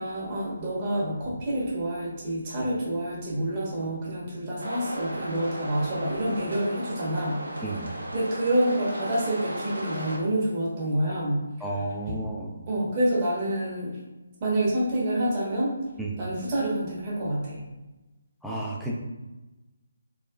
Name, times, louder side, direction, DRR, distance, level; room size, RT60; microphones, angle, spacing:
voice 1, 0.0-11.4 12.7-14.0 14.4-15.7 16.2-17.6, right 1 dB, 25° right, -5 dB, 1.1 m, -28 dB
sound 1, 4.6-10.2, right 1 dB, 75° right, 0.9 m, -36 dB
voice 2, 11.6-12.6 16.0-16.1 18.4-18.9, right 2 dB, ahead, -4 dB, 0.4 m, -32 dB
3.6 x 2.9 x 2.2 m, 1.1 s
figure-of-eight pair, 150°, 0 cm